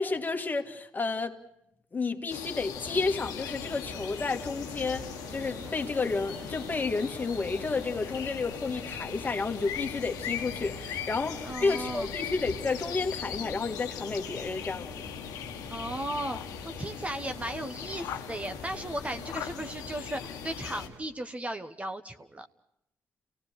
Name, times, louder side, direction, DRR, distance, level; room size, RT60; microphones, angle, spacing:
voice 1, 0.0-1.4 1.9-14.9, left 4 dB, 30° left, 1.9 m, -31 dB
bagno-frogs-birds-forest, 2.3-20.9, left 9 dB, 75° left, 1.2 m, -39 dB
sound 1, 2.8-21.0, right 2 dB, 75° right, 3.3 m, -46 dB
voice 2, 11.4-12.1 15.7-16.4 16.8-22.5, right 1 dB, 20° right, 1.1 m, -36 dB
29.0 x 18.0 x 6.6 m
supercardioid pair, 65°, 6 cm